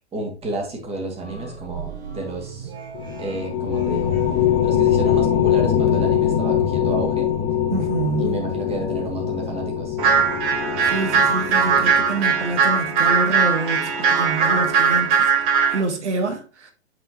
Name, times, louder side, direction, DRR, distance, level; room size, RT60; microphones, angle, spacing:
voice 1, 0.1-2.7 3.2-4.1 4.6-7.3 8.2-10.0, right 2 dB, 20° right, 2.3 m, -30 dB
sound 1, 1.2-4.6, right 4 dB, 65° right, 2.8 m, -36 dB
sound 2, 2.9-12.7, left 10 dB, 45° left, 1.4 m, -23 dB
voice 2, 7.7-8.4 10.8-16.7, right 3 dB, 80° right, 1.6 m, -27 dB
sound 3, 10.0-15.8, right 5 dB, 50° right, 1.9 m, -19 dB
8.0 x 5.2 x 3.0 m
hypercardioid pair, 120°, 34 cm